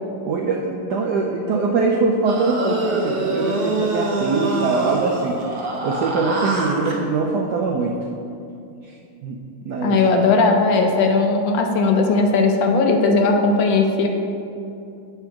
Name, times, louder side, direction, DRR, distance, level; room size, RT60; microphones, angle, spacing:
voice 1, 0.3-7.9 8.8-8.9 9.2-10.1, right 4 dB, 90° right, 1 dB, 0.9 m, -23 dB
sound 1, 2.2-7.0, right 2 dB, 70° right, 0.5 m, -25 dB
voice 2, 9.8-14.1, left 3 dB, 70° left, 3 dB, 1.2 m, -17 dB
8.2 x 3.4 x 5.7 m, 2.6 s
omnidirectional pair, 2.3 m